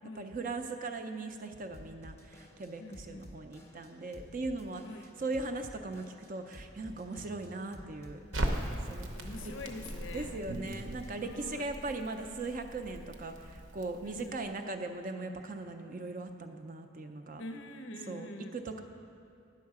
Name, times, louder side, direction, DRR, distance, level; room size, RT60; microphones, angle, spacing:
voice 1, 0.2-4.8 5.2-8.2 8.8-9.1 9.4-9.5 10.1-17.4 18.1-18.8, right 3 dB, 40° right, 6 dB, 0.4 m, -39 dB
Drum kit / Drum, 1.7-11.3, equal, 15° left, 0.7 m, -54 dB
voice 2, 2.8-3.3 4.8-5.1 8.7-10.4 11.2-11.7 14.0-14.4 17.4-18.6, left 2 dB, 65° left, 6 dB, 0.5 m, -45 dB
Crackle, 8.3-14.5, right 1 dB, 75° right, 0.8 m, -39 dB
9.5 x 6.4 x 4.7 m, 2.4 s
head